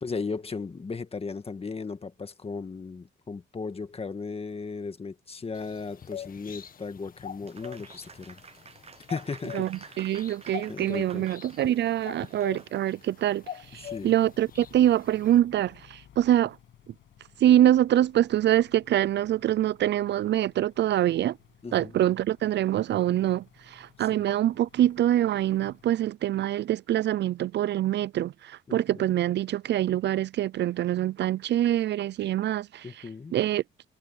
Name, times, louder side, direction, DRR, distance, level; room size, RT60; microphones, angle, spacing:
voice 1, 0.0-8.4 9.1-10.0 10.7-11.3 13.8-14.1 21.6-22.0 24.0-24.1 28.7-29.0 32.8-33.3, left 4 dB, 30° left, 1.8 m, -36 dB
sound 1, 5.5-15.4, left 9 dB, 45° left, 1.7 m, -44 dB
Applause, 7.5-13.0, right 5 dB, 30° right, 1.0 m, -50 dB
voice 2, 9.5-13.4 13.7-16.6 17.4-21.4 21.7-32.9 33.3-33.6, right 12 dB, 60° right, 0.5 m, -25 dB
sound 2, 13.6-25.8, left 11 dB, 75° left, 6.2 m, -58 dB
cardioid pair, 90°, 20 cm